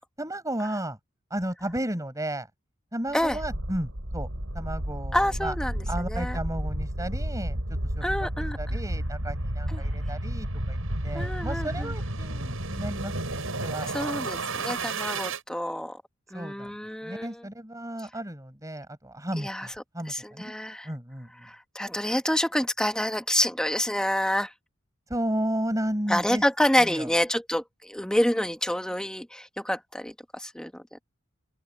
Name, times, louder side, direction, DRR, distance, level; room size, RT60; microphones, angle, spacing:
voice 1, 0.2-1.0 1.3-2.5 2.9-4.3 4.5-5.5 5.9-7.6 8.0-8.3 8.6-10.8 11.0-14.7 16.3-16.7 17.0-20.5 20.8-21.3 25.1-26.4 26.8-27.1, right 1 dB, 15° right, 5.9 m, -33 dB
sound 1, 3.2-15.4, right 1 dB, 90° right, 5.9 m, -31 dB
voice 2, 5.1-6.4 8.0-8.6 9.7-9.8 11.1-11.9 13.9-16.0 16.3-17.4 19.4-19.7 20.1-20.9 21.4-24.5 26.1-31.0, equal, 5° left, 1.7 m, -28 dB
open air
head